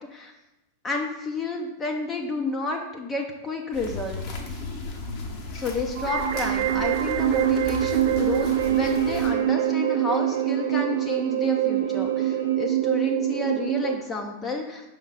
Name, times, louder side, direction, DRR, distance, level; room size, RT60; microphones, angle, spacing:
voice 1, 0.8-4.2 5.5-14.8, left 3 dB, 20° left, 2 dB, 0.7 m, -30 dB
sound 1, 3.7-9.3, left 2 dB, 40° left, 1.1 m, -36 dB
sound 2, 5.9-13.9, right 12 dB, 50° right, 0.5 m, -24 dB
Bowed string instrument, 8.4-12.7, right 3 dB, 85° left, 0.8 m, -41 dB
5.5 x 3.6 x 5.6 m, 0.94 s
figure-of-eight pair, 90°, 0 cm